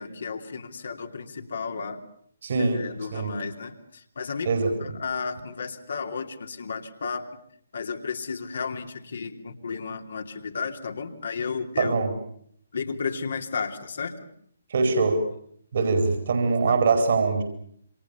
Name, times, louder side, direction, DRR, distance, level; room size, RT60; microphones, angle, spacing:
voice 1, 0.0-2.0 2.6-4.5 4.8-7.3 7.7-11.9 12.7-14.2, left 5 dB, 55° left, 4 dB, 3.0 m, -33 dB
voice 2, 2.4-2.8 3.1-3.4 4.4-4.9 11.8-12.1 14.7-15.3 15.7-17.4, right 4 dB, 50° right, 6 dB, 4.6 m, -23 dB
27.5 x 26.0 x 7.0 m, 0.65 s
figure-of-eight pair, 135°, 0 cm